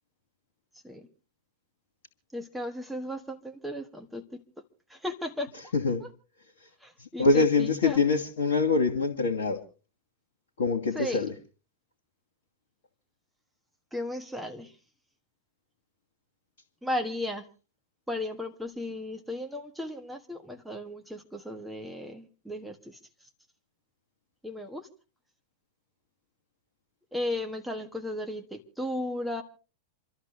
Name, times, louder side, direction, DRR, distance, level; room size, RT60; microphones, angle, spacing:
voice 1, 2.3-4.4 4.9-5.7 6.0-6.1 6.8-8.0 10.9-11.2 13.9-14.7 16.8-17.5 18.1-23.0 24.4-24.9 27.1-29.4, left 1 dB, 5° right, 1.3 m, -35 dB
voice 2, 5.7-6.1 7.0-9.6 10.6-11.3, left 4 dB, 65° left, 1.4 m, -24 dB
28.0 x 13.0 x 3.1 m
figure-of-eight pair, 90°, 0 cm